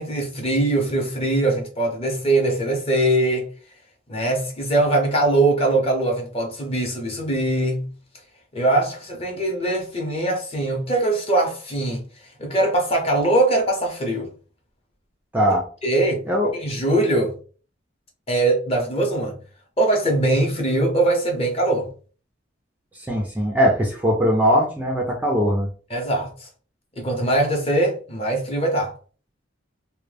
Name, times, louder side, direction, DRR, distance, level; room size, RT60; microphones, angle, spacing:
voice 1, 0.0-3.5 4.1-7.9 8.5-12.0 12.4-14.3 15.8-16.3 16.5-17.3 18.3-19.4 19.8-21.9 25.9-26.5 27.0-28.9, right 2 dB, 30° left, 0.7 m, -21 dB
voice 2, 15.3-15.7 16.3-16.5 23.1-25.7, equal, 10° right, 0.4 m, -20 dB
2.1 x 2.1 x 3.2 m
head